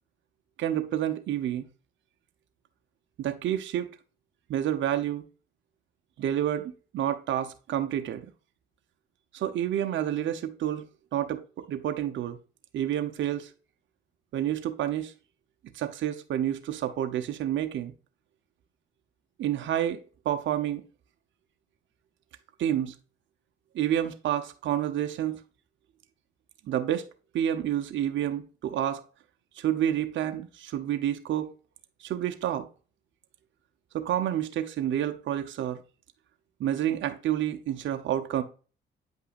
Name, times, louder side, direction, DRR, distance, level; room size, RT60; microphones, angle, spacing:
voice 1, 0.6-1.7 3.2-3.9 4.5-5.2 6.2-8.3 9.3-10.8 11.1-12.4 12.7-13.5 14.3-15.1 15.7-17.9 19.4-20.0 20.2-20.8 22.6-22.9 23.7-25.4 26.7-27.1 27.3-29.0 29.6-31.5 32.0-32.7 33.9-35.8 36.6-38.4, right 11 dB, 70° right, 0.9 m, -29 dB
8.8 x 5.5 x 2.5 m
cardioid pair, 90°, 20 cm